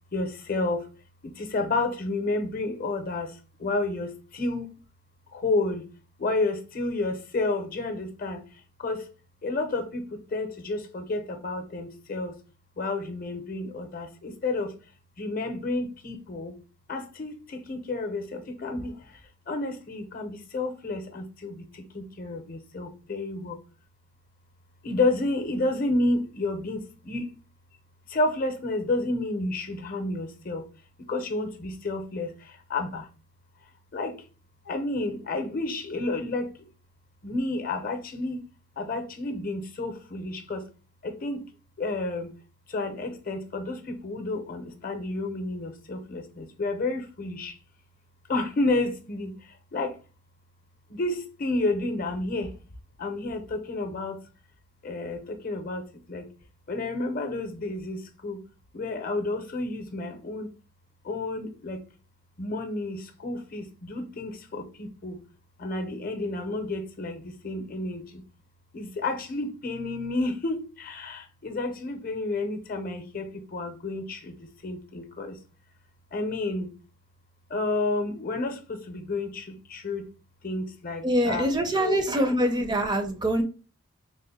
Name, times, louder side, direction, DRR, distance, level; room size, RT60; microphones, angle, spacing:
voice 1, 0.1-0.8 1.4-3.3 3.6-4.6 5.4-5.8 6.2-8.4 8.8-9.0 9.4-10.0 10.3-12.3 12.8-14.7 15.2-16.5 16.9-17.3 17.7-18.9 19.5-21.5 21.9-23.6 24.8-27.3 28.1-30.6 31.1-32.3 32.7-33.0 33.9-34.1 34.7-36.5 37.2-38.4 38.8-40.6 41.0-41.4 41.8-42.3 42.7-47.5 48.3-49.3 49.7-49.9 51.0-52.5 53.0-54.2 54.8-55.8 56.1-56.2 56.7-58.4 58.7-60.5 61.1-61.8 62.4-65.2 65.6-68.0 68.7-74.3 74.6-75.3 76.1-76.7 77.5-78.5 78.9-80.1 80.4-82.0, left 2 dB, 45° left, 0.7 m, -30 dB
voice 2, 81.0-83.4, right 1 dB, 20° right, 0.4 m, -24 dB
3.6 x 2.1 x 4.0 m
head